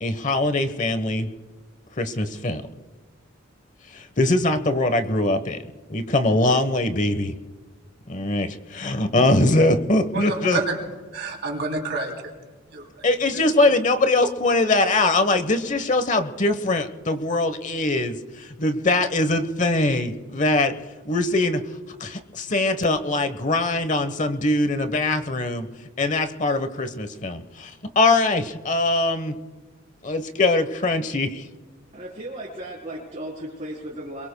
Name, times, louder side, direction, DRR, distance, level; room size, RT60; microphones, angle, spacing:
voice 1, 0.0-1.3 2.0-2.6 3.9-5.6 5.9-7.3 8.1-10.6 13.0-20.7 21.0-21.6 22.0-25.7 26.0-29.4 30.0-31.5, left 2 dB, 35° left, 9 dB, 1.0 m, -22 dB
voice 2, 10.1-10.8 11.1-12.1 12.7-13.0 13.6-13.8, right 3 dB, 55° right, 2 dB, 3.0 m, -29 dB
voice 3, 31.9-34.3, right 1 dB, 30° right, -5 dB, 3.7 m, -35 dB
28.0 x 22.5 x 2.2 m, 1.3 s
head